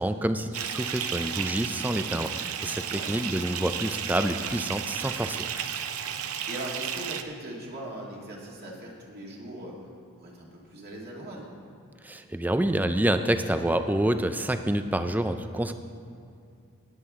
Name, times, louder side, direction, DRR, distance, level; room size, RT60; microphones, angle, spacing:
voice 1, 0.0-5.4 12.0-15.7, right 1 dB, 10° right, 8 dB, 0.4 m, -27 dB
Bathtub (filling or washing) / Fill (with liquid), 0.5-7.2, right 8 dB, 80° right, 0.6 m, -33 dB
voice 2, 2.7-3.2 6.4-9.7 10.2-11.5, right 1 dB, 45° right, -3 dB, 2.1 m, -40 dB
19.5 x 7.9 x 3.6 m, 2.4 s
head